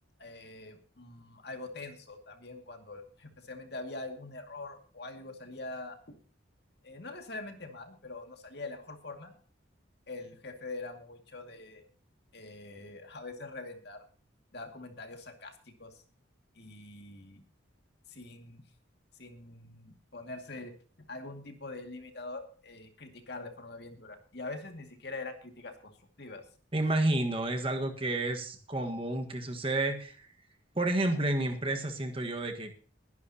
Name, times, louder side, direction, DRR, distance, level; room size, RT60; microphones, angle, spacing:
voice 1, 0.2-6.1 6.8-9.4 10.1-11.8 12.3-14.0 14.5-16.0 16.5-17.4 18.1-18.6 19.2-20.8 21.1-25.9 26.2-26.4, left 2 dB, 55° left, 5 dB, 2.3 m, -44 dB
voice 2, 26.7-30.3 30.7-32.8, right 2 dB, 25° right, 4 dB, 1.6 m, -30 dB
21.5 x 11.0 x 2.9 m, 0.40 s
head